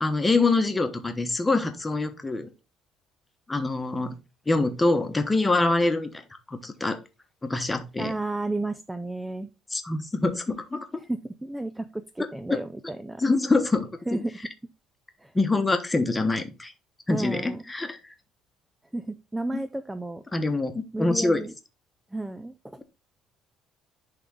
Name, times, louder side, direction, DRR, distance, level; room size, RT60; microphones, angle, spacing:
voice 1, 0.0-2.5 3.5-4.2 4.5-6.2 6.5-7.0 7.4-8.1 9.7-11.0 12.5-12.6 13.2-14.2 15.3-16.7 17.1-18.0 20.3-21.4, left 3 dB, 10° left, 7 dB, 1.0 m, -25 dB
voice 2, 8.0-9.5 11.0-13.2 14.1-14.4 15.2-15.3 17.1-17.6 18.9-20.2 20.9-21.5 22.1-22.8, right 2 dB, 5° right, 11 dB, 0.4 m, -32 dB
10.5 x 3.6 x 3.6 m, 0.29 s
cardioid pair, 150°, 0 cm